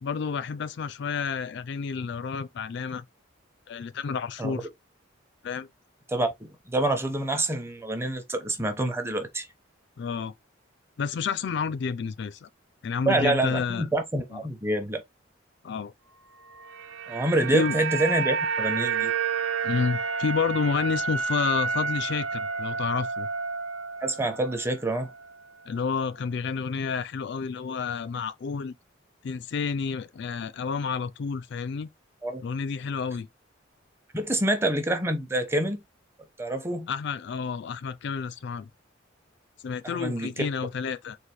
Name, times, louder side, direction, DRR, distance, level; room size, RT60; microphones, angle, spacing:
voice 1, 0.0-3.0 3.7-4.7 5.4-5.7 10.0-10.3 11.0-12.5 12.8-13.9 14.3-14.4 15.6-15.9 17.5-17.8 19.6-23.3 25.7-28.7 29.2-31.9 32.4-33.3 36.9-38.7 39.6-41.2, left 5 dB, 60° left, 0.4 m, -30 dB
voice 2, 6.1-9.5 13.1-15.0 17.1-19.1 24.0-25.1 32.2-32.4 34.1-35.8 36.4-36.9 39.8-40.5, right 1 dB, 15° right, 0.8 m, -27 dB
sound 1, 16.5-24.8 25.0-25.2, right 5 dB, 70° right, 0.8 m, -30 dB
4.1 x 2.5 x 4.7 m
head